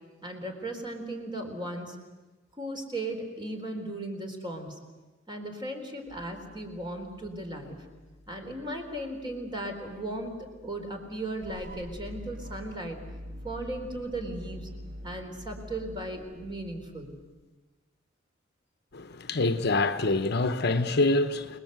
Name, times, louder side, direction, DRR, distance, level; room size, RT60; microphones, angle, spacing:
voice 1, 0.2-2.0 2.6-4.8 5.3-7.8 8.3-10.3 10.6-13.0 13.4-14.7 15.0-17.2, right 1 dB, 25° right, 4.0 m, -36 dB
sound 1, 6.1-12.3, left 2 dB, 80° right, 7.4 m, -57 dB
sound 2, 11.4-17.3, equal, 45° right, 1.9 m, -44 dB
voice 2, 18.9-21.6, left 2 dB, 55° left, 1.0 m, -26 dB
29.0 x 20.5 x 8.0 m
head